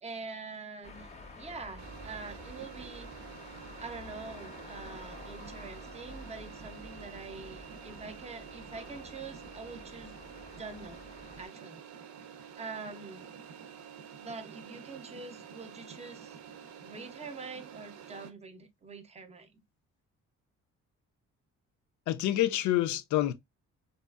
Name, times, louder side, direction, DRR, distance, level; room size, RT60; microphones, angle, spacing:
voice 1, 0.0-3.4 3.8-10.2 10.5-11.1 11.4-11.8 12.6-13.3 14.2-16.4 16.8-19.6, right 4 dB, 20° right, 0.5 m, -45 dB
sound 1, 0.8-11.5, left 2 dB, 20° left, 0.6 m, -49 dB
sound 2, 1.8-18.3, right 7 dB, 65° right, 0.6 m, -49 dB
voice 2, 22.1-23.3, left 14 dB, 75° left, 0.5 m, -27 dB
2.7 x 2.3 x 2.3 m
cardioid pair, 90°, 30 cm